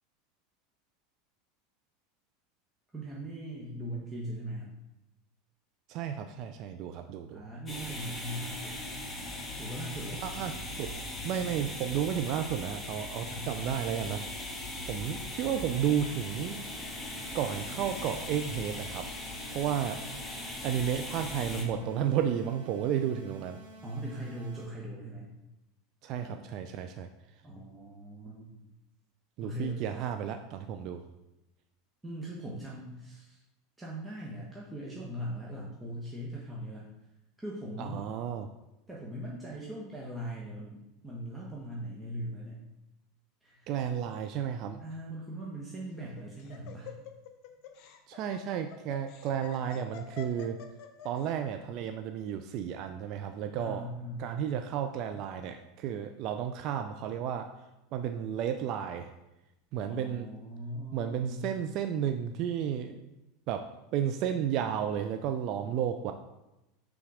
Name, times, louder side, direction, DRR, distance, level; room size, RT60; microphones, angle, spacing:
voice 1, 2.9-4.7 7.3-8.8 9.6-10.2 13.3-13.9 21.4-22.1 23.8-25.3 26.2-26.4 27.4-28.6 29.4-30.1 32.0-33.4 33.8-36.9 37.4-38.0 38.9-42.6 43.4-43.7 44.8-46.9 53.6-54.3 59.9-61.4, right 1 dB, 10° right, -5 dB, 1.3 m, -40 dB
voice 2, 5.9-7.4 10.2-10.9 11.2-14.3 14.8-16.6 17.3-19.1 19.5-20.0 20.6-23.6 26.0-27.1 29.4-31.0 37.8-38.5 43.7-44.8 48.1-50.6 51.0-53.9 54.2-57.5 57.9-59.1 59.7-60.3 60.9-63.0 63.5-66.1, right 9 dB, 50° right, 7 dB, 0.4 m, -32 dB
sound 1, 7.7-21.6, left 1 dB, 15° left, 2.0 m, -39 dB
sound 2, 15.6-24.6, right 1 dB, 85° right, 1.3 m, -51 dB
Laughter, 45.8-51.2, left 8 dB, 55° left, 0.8 m, -47 dB
5.7 x 3.8 x 4.9 m, 0.94 s
hypercardioid pair, 85°, 0 cm